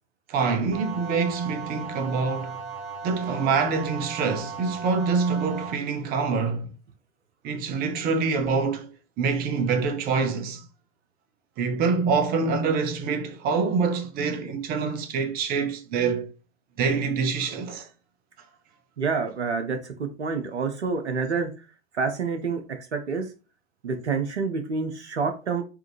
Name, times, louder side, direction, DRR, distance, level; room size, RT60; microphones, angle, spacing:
voice 1, 0.3-2.6 3.0-6.7 7.4-8.9 9.2-10.6 11.6-16.3 16.8-17.9, right 5 dB, 30° right, 0.6 m, -25 dB
sound 1, 0.7-5.7, right 5 dB, 55° right, 1.4 m, -37 dB
voice 2, 19.0-21.5 21.9-23.3 23.8-25.6, right 5 dB, 85° right, 0.7 m, -28 dB
3.4 x 2.5 x 3.0 m
figure-of-eight pair, 90°, 33 cm